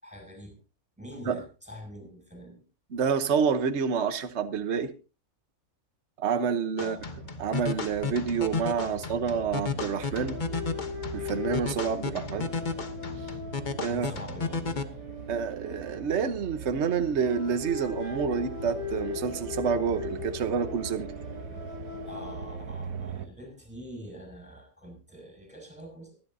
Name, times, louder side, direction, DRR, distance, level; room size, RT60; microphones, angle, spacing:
voice 1, 0.0-0.6 1.0-2.6 6.8-7.0 8.9-9.0 13.9-14.7 22.0-26.2, equal, 5° right, 6.4 m, -45 dB
voice 2, 2.9-4.9 6.2-7.0 7.4-10.4 11.1-12.5 13.8-14.1 15.3-21.1, right 6 dB, 55° right, 1.3 m, -28 dB
sound 1, 6.8-14.8, left 4 dB, 35° left, 1.1 m, -34 dB
sound 2, 7.0-23.3, right 5 dB, 75° right, 1.4 m, -42 dB
sound 3, 7.9-8.1 8.4-8.6 10.1-16.7 17.1-22.8, left 6 dB, 55° left, 6.5 m, -40 dB
24.0 x 11.5 x 2.7 m
omnidirectional pair, 1.5 m